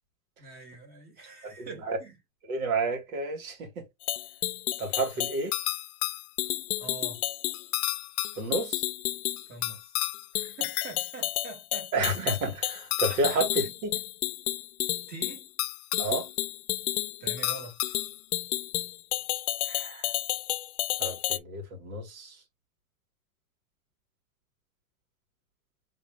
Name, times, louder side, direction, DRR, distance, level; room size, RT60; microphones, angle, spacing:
voice 1, 0.4-2.2 5.1-5.2 6.8-7.2 9.5-10.0 10.3-12.2 13.1-13.7 15.1-15.5 17.2-17.8, right 3 dB, 20° right, 1.6 m, -44 dB
voice 2, 1.6-2.0 2.5-3.9 4.8-5.5 8.4-8.8 11.9-14.0 16.0-16.3 19.7-20.1 21.0-22.4, right 2 dB, 75° right, 2.5 m, -30 dB
sound 1, 4.0-21.4, left 16 dB, 85° left, 0.6 m, -31 dB
3.7 x 3.0 x 3.6 m
supercardioid pair, 150°, 43 cm